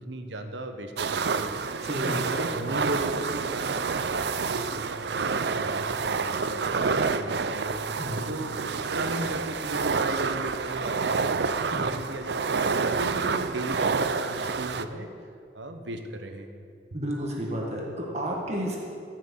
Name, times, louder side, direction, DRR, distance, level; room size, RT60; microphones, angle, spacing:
voice 1, 0.1-1.5 2.0-7.8 8.2-8.6 8.9-15.1 15.5-16.6 16.9-17.0, right 1 dB, 85° right, 6 dB, 1.1 m, -36 dB
sound 1, 1.0-14.8, right 5 dB, 70° right, 0.5 m, -28 dB
voice 2, 1.8-2.4 8.0-8.3 11.7-12.0 16.9-18.8, equal, 35° right, -2 dB, 1.6 m, -32 dB
15.0 x 6.3 x 8.1 m, 2.5 s
head